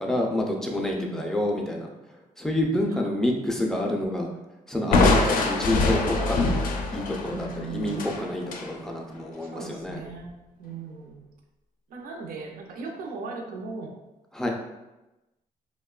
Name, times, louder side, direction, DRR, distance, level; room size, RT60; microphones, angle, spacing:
voice 1, 0.0-1.9 2.4-4.3 4.7-6.5 6.9-10.0 14.3-14.5, left 1 dB, 5° left, 0 dB, 0.3 m, -28 dB
voice 2, 1.0-1.3 2.7-3.1 7.3-8.2 9.3-10.3 10.6-11.3 11.9-14.0, right 4 dB, 80° right, 2 dB, 0.5 m, -38 dB
Crushing, 4.9-8.7, left 3 dB, 70° left, 0.4 m, -24 dB
2.9 x 2.1 x 2.3 m, 1.0 s
cardioid pair, 130°, 15 cm